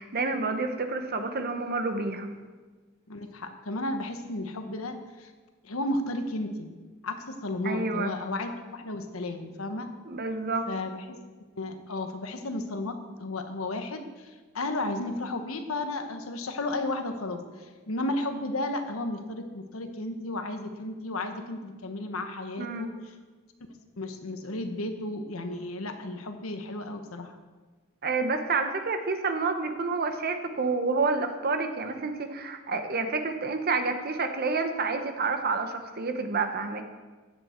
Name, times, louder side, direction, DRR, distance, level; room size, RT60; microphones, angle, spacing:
voice 1, 0.0-2.3 7.6-8.1 10.1-10.7 22.6-22.9 28.0-36.8, right 3 dB, 50° right, 7 dB, 1.1 m, -29 dB
voice 2, 3.1-5.3 5.6-6.7 7.0-9.9 10.7-11.2 11.6-22.9 24.0-27.4, left 2 dB, 90° left, 6 dB, 1.3 m, -33 dB
15.0 x 8.9 x 4.5 m, 1.4 s
head